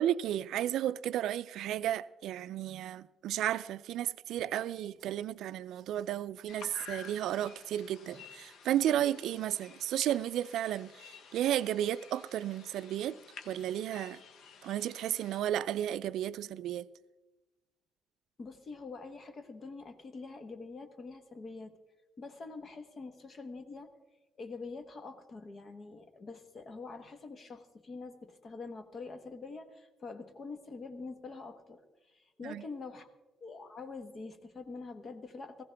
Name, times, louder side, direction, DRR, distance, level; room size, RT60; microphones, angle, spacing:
voice 1, 0.0-13.2 13.5-14.2 14.6-16.9 32.4-32.6, right 11 dB, 80° right, 0.3 m, -33 dB
sound 1, 4.2-8.9, right 4 dB, 45° right, 1.8 m, -63 dB
sound 2, 6.5-15.4, left 6 dB, 65° left, 1.2 m, -52 dB
voice 2, 18.4-21.7 22.2-23.9 24.4-33.1 33.4-35.6, left 3 dB, 30° left, 1.1 m, -45 dB
18.5 x 15.5 x 3.4 m
cardioid pair, 175°, 0 cm